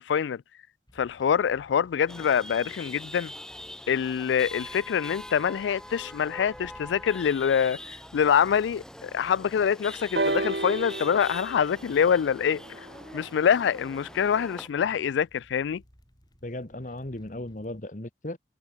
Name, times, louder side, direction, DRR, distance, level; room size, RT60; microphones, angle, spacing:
voice 1, 0.1-0.4 1.0-3.3 3.9-7.8 8.1-12.9 13.1-15.8, left 7 dB, 90° left, 0.3 m, -25 dB
sound 1, 0.9-17.8, equal, 20° left, 5.2 m, -57 dB
Chatter / Vehicle horn car horn honking / Traffic noise roadway noise, 2.1-14.7, left 1 dB, 5° left, 1.1 m, -43 dB
sound 2, 10.2-14.0 14.9-15.0, right 2 dB, 65° right, 1.8 m, -33 dB
voice 2, 16.4-18.4, left 1 dB, 45° left, 1.4 m, -36 dB
head